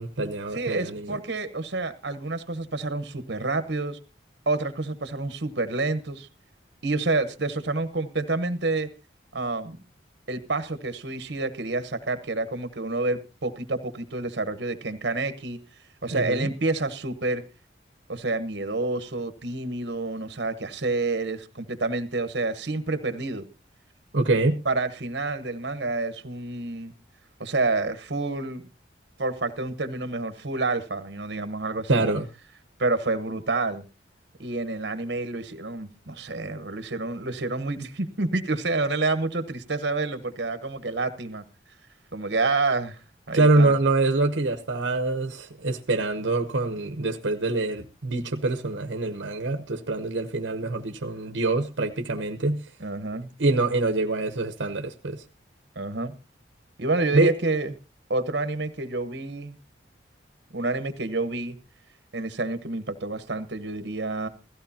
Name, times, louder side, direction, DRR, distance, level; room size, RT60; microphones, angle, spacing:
voice 1, 0.0-1.1 16.1-16.5 24.1-24.6 31.9-32.3 43.3-52.6 53.4-55.2 57.1-57.3, right 2 dB, 85° right, 0.9 m, -25 dB
voice 2, 0.5-4.0 4.5-6.3 6.8-8.9 9.3-9.8 10.3-15.6 16.0-17.4 18.1-23.5 24.6-26.9 27.4-28.6 29.2-32.0 32.8-33.8 34.4-41.4 42.1-43.0 43.3-43.7 52.8-53.3 55.7-56.1 56.8-57.7 58.1-59.6 60.5-61.6 62.1-64.3, right 3 dB, 70° right, 1.2 m, -28 dB
17.0 x 14.5 x 2.9 m
head